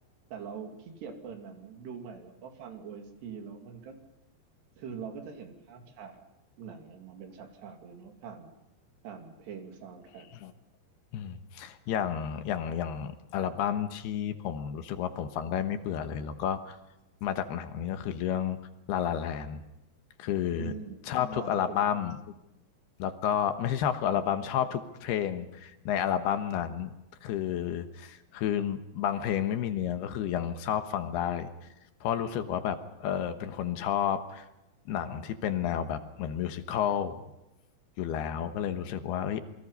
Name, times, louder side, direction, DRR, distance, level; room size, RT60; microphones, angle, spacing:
voice 1, 0.3-4.0 4.8-6.2 6.6-8.5 9.0-10.3 20.6-21.0 21.3-21.8, right 6 dB, 80° right, 4 dB, 4.7 m, -43 dB
voice 2, 11.1-16.8 17.2-18.6 18.9-19.6 20.2-20.7 21.1-22.1 23.0-26.9 27.2-31.5 32.0-34.5 34.9-37.2 38.0-39.4, left 9 dB, 75° left, 9 dB, 3.2 m, -31 dB
28.0 x 23.0 x 5.6 m, 0.94 s
omnidirectional pair, 4.8 m